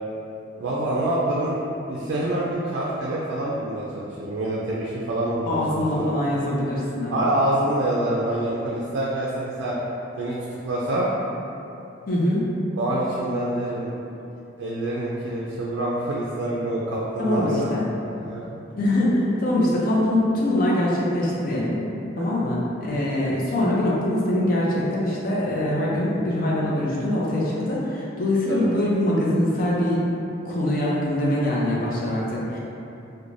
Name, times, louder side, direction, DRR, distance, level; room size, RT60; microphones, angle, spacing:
voice 1, 0.6-1.6 1.9-6.1 7.1-9.8 10.1-10.4 10.6-11.1 12.7-13.9 14.6-18.6 22.2-22.4 28.5-28.7, right 1 dB, 85° right, -6 dB, 0.3 m, -26 dB
voice 2, 5.5-7.2 12.1-12.5 17.2-17.8 18.8-21.8 22.2-30.0 30.5-32.6, left 1 dB, 50° left, -5 dB, 0.5 m, -23 dB
2.5 x 2.1 x 3.1 m, 2.8 s
head